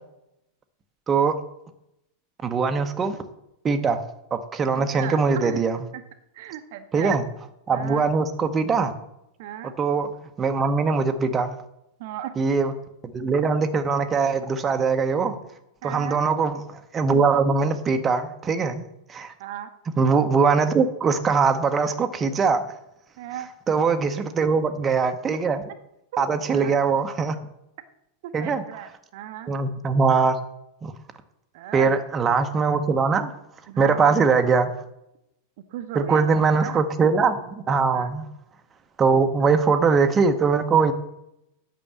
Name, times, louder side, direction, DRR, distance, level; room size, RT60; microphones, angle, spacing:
voice 1, 2.4-3.2 3.6-4.0 4.3-5.8 6.9-7.2 7.7-8.9 9.8-10.1 10.4-11.5 12.4-12.7 13.1-15.4 15.8-18.8 19.1-19.3 20.0-22.6 23.7-25.6 26.2-27.4 28.3-28.6 29.5-30.4 30.8-30.9 31.7-33.3 33.8-34.7 35.9-38.3 39.0-40.9, right 5 dB, 20° right, 7 dB, 0.8 m, -21 dB
voice 2, 4.7-5.7 6.3-7.2 7.7-8.1 9.4-9.7 12.0-12.3 15.8-16.2 19.4-19.7 23.2-23.5 24.2-24.3 26.1-26.8 28.2-29.5 31.5-31.9 33.7-34.2 35.7-36.3 36.6-36.8 37.9-38.1, right 11 dB, 50° right, 9 dB, 0.8 m, -36 dB
8.6 x 6.2 x 7.2 m, 0.83 s
figure-of-eight pair, 90°, 0 cm